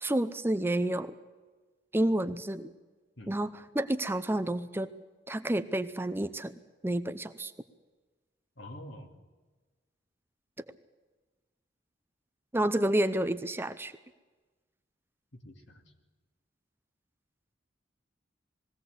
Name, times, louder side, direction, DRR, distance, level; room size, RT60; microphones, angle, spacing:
voice 1, 0.0-1.1 1.9-2.7 3.3-4.9 5.3-6.6 6.8-7.5 12.5-13.9, right 1 dB, 10° right, 11 dB, 0.6 m, -29 dB
voice 2, 8.6-9.2 15.3-15.8, left 1 dB, 70° left, 4 dB, 2.7 m, -46 dB
21.5 x 16.5 x 8.1 m, 1.3 s
head